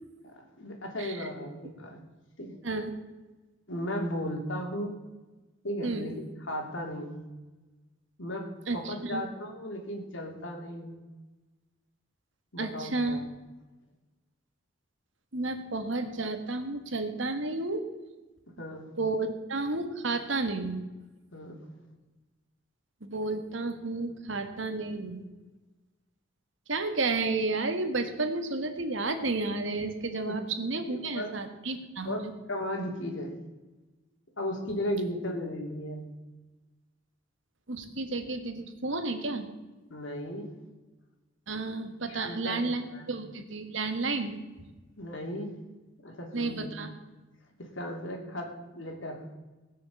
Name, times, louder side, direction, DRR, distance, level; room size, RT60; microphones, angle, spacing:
voice 1, 0.2-2.0 2.4-2.6 3.7-4.9 5.6-7.2 8.2-8.5 8.7-10.9 12.5-13.3 18.6-18.9 21.3-21.7 30.3-30.4 30.9-31.3 32.0-33.3 34.4-36.0 39.9-40.5 42.1-43.1 45.0-45.5 46.0-46.7 47.6-49.2, equal, 70° left, 2 dB, 2.9 m, -36 dB
voice 2, 8.7-9.2 12.6-13.2 15.3-17.9 19.0-20.8 23.0-25.3 26.7-32.3 37.7-39.5 41.5-44.3 46.3-46.9, right 3 dB, 70° right, 7 dB, 1.7 m, -32 dB
18.5 x 6.7 x 7.1 m, 1.2 s
head